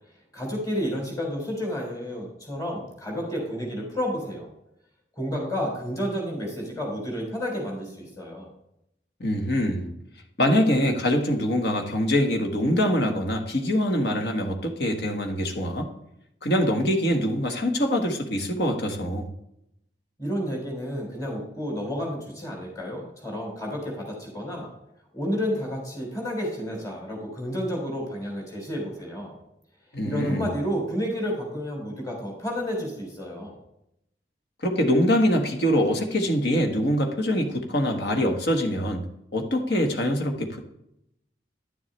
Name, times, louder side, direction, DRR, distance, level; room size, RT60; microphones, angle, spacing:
voice 1, 0.3-4.5 5.2-8.5 20.2-24.7 25.1-29.3 30.0-33.6, equal, 20° left, -1 dB, 3.6 m, -31 dB
voice 2, 9.2-9.9 10.4-15.9 16.4-19.3 29.9-30.5 34.6-39.0 39.3-40.6, equal, 70° left, 3 dB, 1.5 m, -24 dB
11.0 x 7.2 x 3.3 m, 0.80 s
head